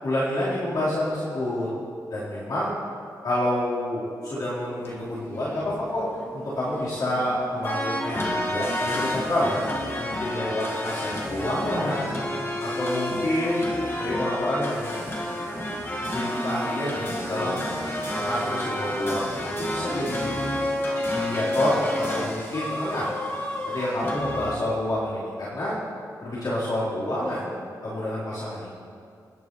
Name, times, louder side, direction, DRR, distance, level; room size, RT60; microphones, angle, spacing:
voice 1, 0.0-1.7 2.1-2.7 3.2-6.0 6.3-9.6 10.0-12.2 12.6-13.7 14.0-15.0 16.0-17.7 18.1-20.6 21.1-23.1 23.7-25.8 26.2-28.7, left 1 dB, 60° left, -10 dB, 4.0 m, -28 dB
sound 1, 4.8-24.6, left 1 dB, 35° left, 1.7 m, -30 dB
27.0 x 10.0 x 3.2 m, 2.4 s
wide cardioid pair, 125°, 7 cm